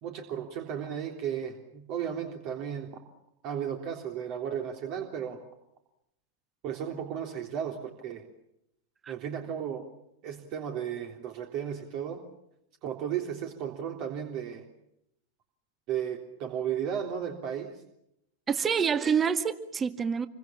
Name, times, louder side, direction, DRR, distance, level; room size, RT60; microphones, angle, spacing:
voice 1, 0.0-3.0 3.4-5.4 6.6-8.2 9.1-9.9 10.2-12.2 12.8-14.6 15.9-17.8, right 8 dB, 40° right, 3 dB, 3.4 m, -34 dB
voice 2, 18.5-20.3, right 7 dB, 20° right, 11 dB, 1.9 m, -27 dB
28.0 x 24.0 x 7.3 m, 0.79 s
figure-of-eight pair, 90°, 0 cm